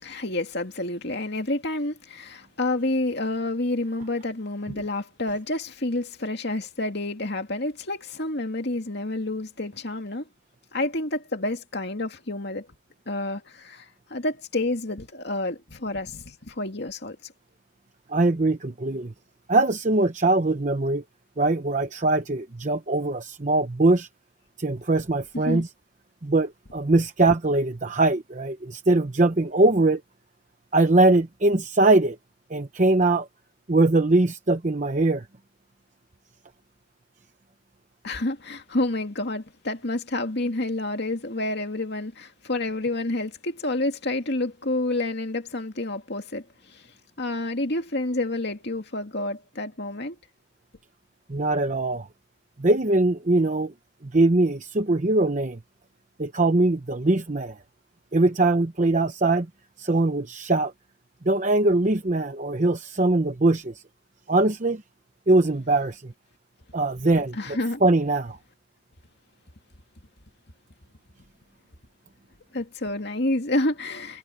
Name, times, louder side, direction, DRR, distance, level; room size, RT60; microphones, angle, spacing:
voice 1, 0.0-10.3 10.7-12.7 13.1-17.3 25.4-25.6 38.0-46.9 47.2-50.2 67.3-67.8 72.5-74.2, left 2 dB, 55° left, 2.5 m, -29 dB
voice 2, 18.1-19.1 19.5-21.0 21.4-24.1 24.6-25.7 26.2-30.0 30.7-32.2 32.5-33.3 33.7-35.3 51.3-52.1 52.6-53.7 54.0-55.6 56.2-57.6 58.1-59.5 59.8-60.7 61.2-63.8 64.3-64.8 65.3-66.1 66.7-68.4, right 2 dB, 40° right, 0.8 m, -22 dB
head